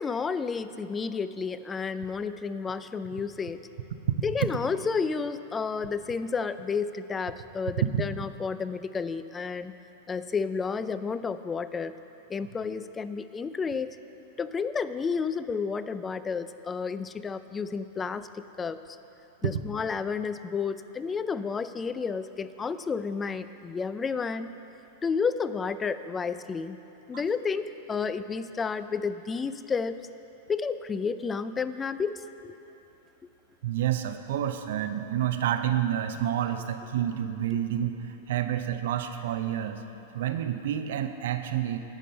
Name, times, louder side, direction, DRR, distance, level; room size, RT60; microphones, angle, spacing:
voice 1, 0.0-3.6 4.2-9.7 10.1-12.0 12.3-14.0 14.4-18.8 19.4-24.5 25.0-26.8 27.1-30.0 30.5-32.5, left 5 dB, 20° left, 13 dB, 0.4 m, -31 dB
voice 2, 33.6-39.8 40.1-41.8, right 10 dB, 70° right, 8 dB, 0.6 m, -29 dB
11.0 x 5.3 x 7.6 m, 2.9 s
hypercardioid pair, 105°, 0 cm